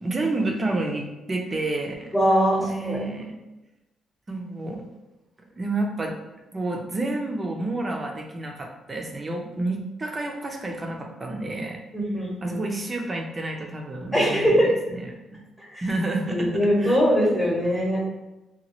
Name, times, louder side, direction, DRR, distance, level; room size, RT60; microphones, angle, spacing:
voice 1, 0.0-2.1 2.6-3.3 4.3-4.8 5.6-6.1 6.5-11.8 12.2-15.4 15.8-16.5 16.8-17.0, right 2 dB, 30° right, 2 dB, 0.5 m, -29 dB
voice 2, 2.1-3.0 11.9-12.6 14.1-14.7 15.7-15.8 16.3-18.0, equal, 10° left, -5 dB, 0.9 m, -21 dB
2.9 x 2.3 x 2.9 m, 1.0 s
cardioid pair, 90°, 0 cm